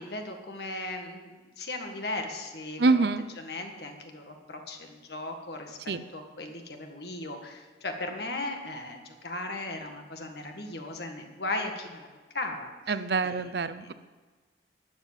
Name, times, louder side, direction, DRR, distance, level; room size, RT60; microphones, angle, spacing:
voice 1, 0.0-3.1 3.4-12.1 12.3-12.7 13.2-13.5 13.8-13.9, left 2 dB, 65° left, 3 dB, 1.8 m, -37 dB
voice 2, 2.8-3.2 5.9-6.0 12.9-13.9, right 3 dB, 60° right, 13 dB, 0.6 m, -25 dB
12.5 x 7.3 x 9.0 m, 1.4 s
head